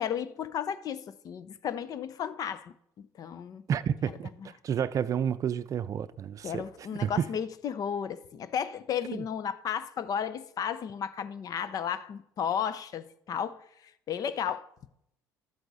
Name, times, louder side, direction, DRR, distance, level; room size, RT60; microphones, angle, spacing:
voice 1, 0.0-3.6 6.4-13.6 14.1-14.7, left 8 dB, 50° left, 0.6 m, -33 dB
voice 2, 3.7-4.3 4.6-6.6 7.0-7.3 9.1-9.2, right 8 dB, 45° right, 0.5 m, -30 dB
12.0 x 7.9 x 4.1 m
supercardioid pair, 75°, 8 cm